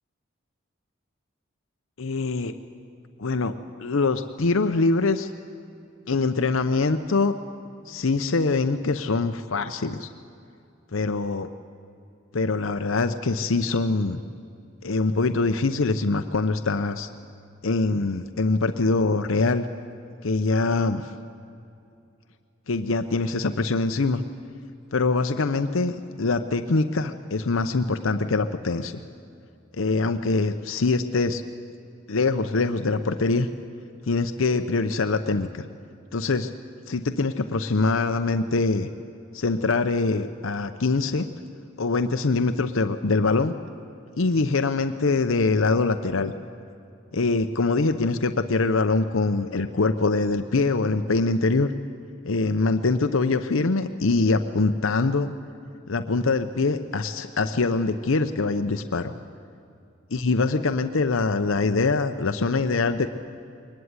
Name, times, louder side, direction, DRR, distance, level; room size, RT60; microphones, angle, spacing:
voice 1, 2.0-2.5 3.2-3.5 3.8-5.3 6.1-7.3 7.9-10.1 10.9-11.5 12.3-14.2 14.8-17.1 17.6-19.7 20.2-21.1 22.7-24.2 24.9-29.0 29.7-31.4 32.1-33.5 34.1-35.7 36.1-36.5 36.9-38.9 39.3-41.3 41.8-43.5 44.2-46.3 47.1-51.7 52.2-55.3 55.9-59.1 60.1-63.1, left 3 dB, 90° left, 8 dB, 0.8 m, -23 dB
22.5 x 19.5 x 9.6 m, 2.6 s
head